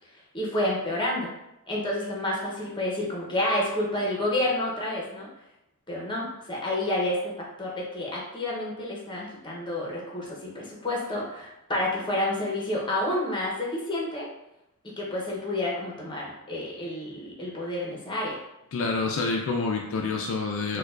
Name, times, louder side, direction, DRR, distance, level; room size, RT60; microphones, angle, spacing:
voice 1, 0.3-1.3 1.7-5.3 5.9-7.3 7.6-14.3 15.0-18.4 20.7-20.8, left 1 dB, 20° left, -3 dB, 0.7 m, -29 dB
voice 2, 18.7-20.8, left 4 dB, 60° left, 1 dB, 0.3 m, -27 dB
4.4 x 2.2 x 2.4 m, 0.88 s
head